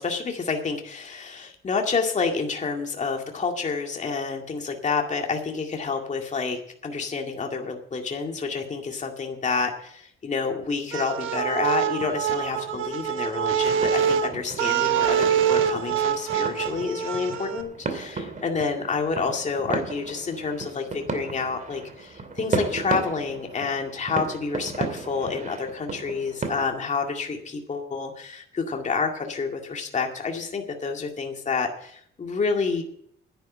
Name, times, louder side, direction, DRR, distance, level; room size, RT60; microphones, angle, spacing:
voice 1, 0.0-32.8, left 4 dB, 35° left, 2 dB, 2.1 m, -29 dB
sound 1, 10.9-17.6, right 9 dB, 85° right, 1.3 m, -25 dB
sound 2, 12.0-26.7, right 4 dB, 40° right, 2.6 m, -35 dB
10.0 x 10.0 x 7.5 m, 0.66 s
cardioid pair, 90°, 20 cm